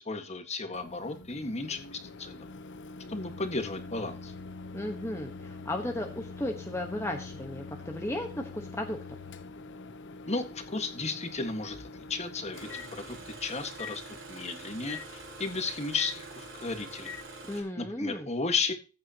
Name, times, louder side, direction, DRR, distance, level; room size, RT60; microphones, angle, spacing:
voice 1, 0.0-2.5 3.1-4.3 10.3-14.0 14.3-17.2 17.5-18.7, left 4 dB, 30° left, 7 dB, 1.7 m, -34 dB
Microwave oven, 0.7-17.2, left 4 dB, 60° left, 0.9 m, -45 dB
voice 2, 4.7-9.2 17.4-18.3, left 1 dB, 15° left, 2 dB, 1.2 m, -35 dB
Engine starting, 12.5-17.6, right 2 dB, 65° right, 5.3 m, -45 dB
15.0 x 9.5 x 2.9 m, 0.32 s
head